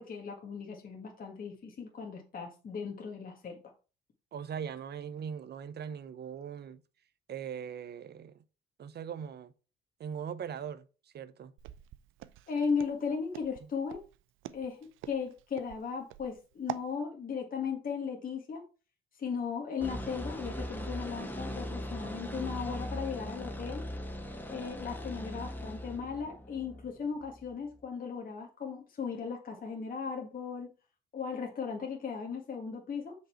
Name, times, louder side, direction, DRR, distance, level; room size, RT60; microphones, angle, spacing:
voice 1, 0.0-3.6 12.5-14.0 14.5-14.8 15.1-18.6 19.2-23.8 24.5-30.7 31.1-33.1, left 6 dB, 45° left, 1.8 m, -37 dB
voice 2, 4.3-6.8 7.3-8.3 8.8-9.5 10.0-10.9 11.1-11.5 13.6-13.7, right 8 dB, 55° right, 0.8 m, -40 dB
Walk footsteps, 11.6-16.9, right 14 dB, 90° right, 0.5 m, -44 dB
sound 1, 19.8-27.8, equal, 10° left, 1.7 m, -40 dB
6.5 x 5.3 x 4.4 m
cardioid pair, 90°, 20 cm